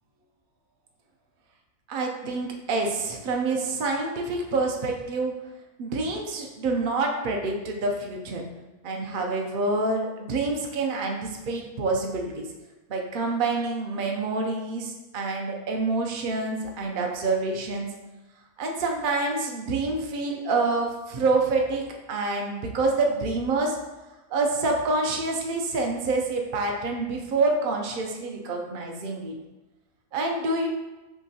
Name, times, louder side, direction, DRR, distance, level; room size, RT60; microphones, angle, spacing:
voice 1, 1.9-5.4 5.8-8.4 8.8-12.5 12.9-17.9 18.6-23.8 24.3-29.4 30.1-30.7, right 3 dB, 85° right, 1 dB, 0.4 m, -27 dB
5.8 x 3.0 x 2.8 m, 1.1 s
omnidirectional pair, 1.6 m